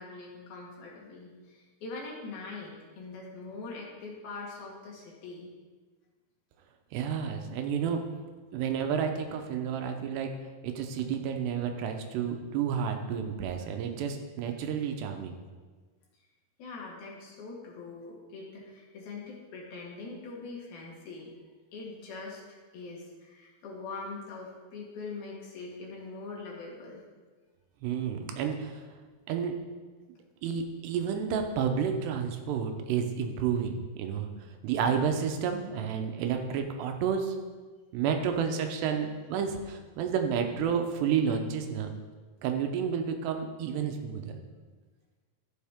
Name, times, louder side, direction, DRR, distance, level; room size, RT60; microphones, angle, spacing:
voice 1, 0.0-5.5 16.6-21.4 21.7-27.0, left 3 dB, 70° left, -3 dB, 3.6 m, -43 dB
voice 2, 6.9-8.0 8.5-10.3 10.6-15.4 27.8-29.0 29.3-29.6 30.4-34.3 34.6-37.4 37.9-41.9 42.4-44.4, right 7 dB, 90° right, 5 dB, 3.0 m, -30 dB
13.0 x 7.3 x 3.6 m, 1.4 s
omnidirectional pair, 4.7 m